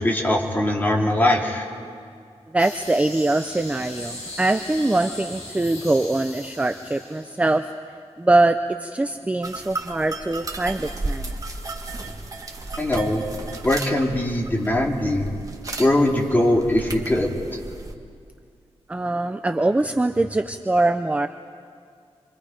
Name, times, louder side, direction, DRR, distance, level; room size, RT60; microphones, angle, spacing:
voice 1, 0.0-1.6 12.8-13.2 13.6-15.3 15.8-17.3, left 1 dB, 15° left, -1 dB, 2.5 m, -21 dB
voice 2, 2.5-7.7 8.2-11.3 18.9-21.3, right 2 dB, 10° right, 8 dB, 0.5 m, -22 dB
sound 1, 2.6-7.7, left 1 dB, 85° left, 7.0 m, -39 dB
sound 2, 9.4-17.9, right 2 dB, 30° right, 1.6 m, -34 dB
28.0 x 24.0 x 5.1 m, 2.2 s
wide cardioid pair, 160°, 11 cm